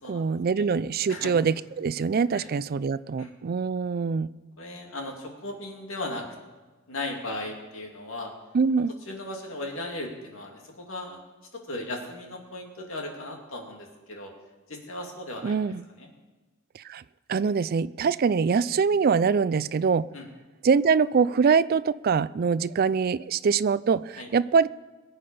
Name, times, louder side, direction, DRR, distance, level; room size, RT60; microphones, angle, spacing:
voice 1, 0.1-4.3 8.5-8.9 15.4-15.8 16.7-17.0 17.3-20.1 20.6-24.7, right 5 dB, 45° right, 16 dB, 0.4 m, -24 dB
voice 2, 4.6-6.2 6.9-8.3 9.1-11.2 11.5-14.3 14.7-15.6 16.0-16.1 20.1-20.3 24.2-24.3, left 2 dB, 65° left, 1 dB, 2.6 m, -37 dB
22.0 x 8.6 x 5.5 m, 1.3 s
head